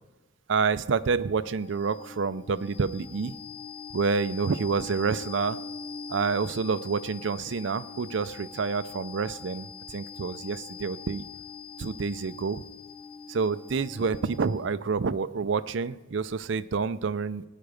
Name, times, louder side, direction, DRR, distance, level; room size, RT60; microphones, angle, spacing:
voice 1, 0.5-3.3 3.9-5.6 6.1-11.2 11.8-12.6 13.3-17.4, right 5 dB, 70° right, 14 dB, 0.5 m, -28 dB
sound 1, 1.2-14.8, left 5 dB, 25° left, 2.5 m, -43 dB
18.0 x 9.3 x 5.1 m, 1.2 s
head